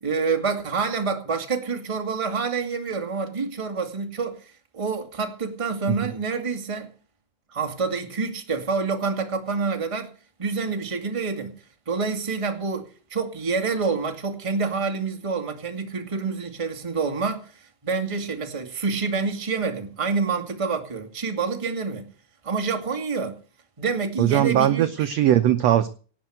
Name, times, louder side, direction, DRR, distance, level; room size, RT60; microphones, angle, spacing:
voice 1, 0.0-6.9 7.5-10.1 10.4-11.5 11.8-22.1 22.4-23.4 23.8-24.9, right 4 dB, 15° right, 1.5 m, -27 dB
voice 2, 24.2-25.9, right 11 dB, 70° right, 1.6 m, -20 dB
18.0 x 6.9 x 7.9 m
omnidirectional pair, 3.8 m